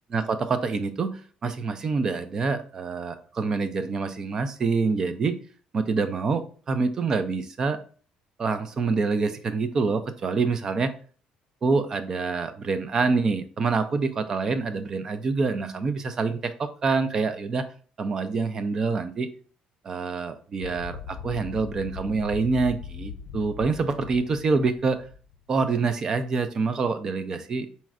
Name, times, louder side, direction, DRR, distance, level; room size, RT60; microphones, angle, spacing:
voice 1, 0.1-5.4 5.7-7.8 8.4-10.9 11.6-17.7 18.0-19.3 19.8-25.1 25.5-27.7, right 4 dB, 25° right, 11 dB, 0.4 m, -26 dB
sound 1, 20.6-25.7, left 6 dB, 80° left, 0.4 m, -39 dB
4.3 x 4.1 x 2.4 m, 0.41 s
cardioid pair, 170°, 2 cm